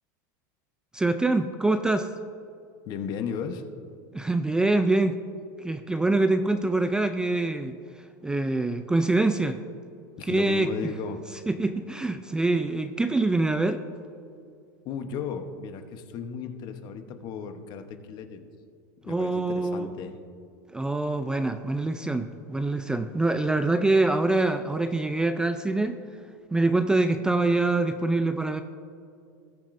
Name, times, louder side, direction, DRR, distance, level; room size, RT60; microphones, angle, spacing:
voice 1, 0.9-2.1 4.1-5.2 5.6-9.6 10.2-10.7 11.5-13.8 19.1-19.9 20.7-26.0 26.5-28.6, right 2 dB, 5° right, 8 dB, 0.3 m, -25 dB
voice 2, 2.8-3.6 10.2-11.2 14.8-18.5 19.0-20.1, left 6 dB, 45° left, 7 dB, 1.0 m, -35 dB
19.5 x 7.2 x 2.6 m, 2.4 s
supercardioid pair, 135°, 10 cm